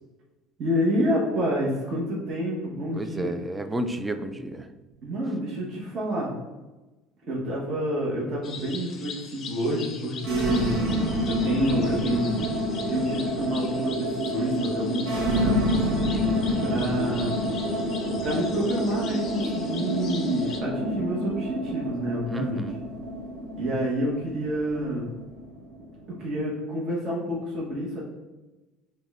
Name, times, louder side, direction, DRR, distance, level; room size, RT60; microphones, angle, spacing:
voice 1, 0.6-3.3 5.0-6.3 7.2-12.5 12.9-15.8 16.6-17.4 18.2-22.6 23.5-25.1 26.2-28.0, equal, 35° right, -5 dB, 0.9 m, -28 dB
voice 2, 3.0-4.7 16.3-16.6 22.3-22.7, right 1 dB, 10° right, 9 dB, 0.3 m, -31 dB
sound 1, 8.4-20.6, left 5 dB, 40° left, 0.5 m, -41 dB
sound 2, 10.2-26.2, equal, 85° right, 1.1 m, -28 dB
6.0 x 2.1 x 3.4 m, 1.1 s
cardioid pair, 135°, 0 cm